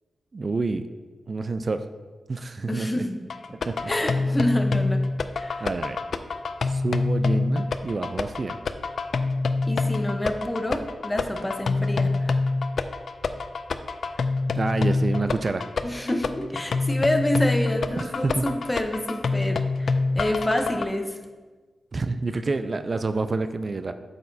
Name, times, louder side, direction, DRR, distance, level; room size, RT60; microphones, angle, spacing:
voice 1, 0.3-0.9 1.3-1.9 2.3-3.0 3.5-3.9 5.6-6.0 6.6-8.6 14.6-15.7 18.0-18.4 21.9-23.9, right 3 dB, 45° right, 10 dB, 0.3 m, -28 dB
voice 2, 2.7-3.2 3.9-5.0 5.4-5.7 9.7-12.3 15.8-21.2, left 1 dB, 15° left, 5 dB, 0.8 m, -27 dB
sound 1, 3.3-20.9, left 3 dB, 65° left, 0.4 m, -26 dB
8.4 x 6.6 x 2.7 m, 1.4 s
cardioid pair, 65°, 0 cm